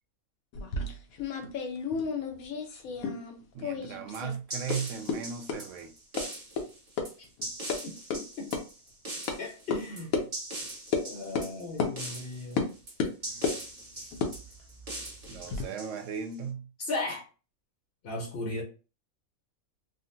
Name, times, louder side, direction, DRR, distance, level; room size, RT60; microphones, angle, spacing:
sound 1, 0.5-3.3 3.6-4.3 4.7-4.8 5.1-5.2 5.5-5.6 6.2-6.3 6.6-6.7 7.0-7.1 7.4-7.8 8.1-8.2 8.5-8.6 9.3-9.4 9.7-9.8 10.1-10.3 10.9-11.1 11.3-11.5 11.8-11.9 12.6-12.7 13.0-13.6 14.1-15.6, left 5 dB, 80° left, 1.1 m, -32 dB
voice 1, 3.5-5.9 15.3-16.7, right 6 dB, 70° right, 0.9 m, -37 dB
sound 2, 4.1-16.3, right 1 dB, 30° right, 1.0 m, -41 dB
voice 2, 7.8-8.5 9.4-10.1 11.0-12.7 13.9-14.1 16.9-17.2 18.0-18.6, left 2 dB, 55° left, 0.8 m, -36 dB
3.7 x 2.1 x 2.5 m
omnidirectional pair, 1.4 m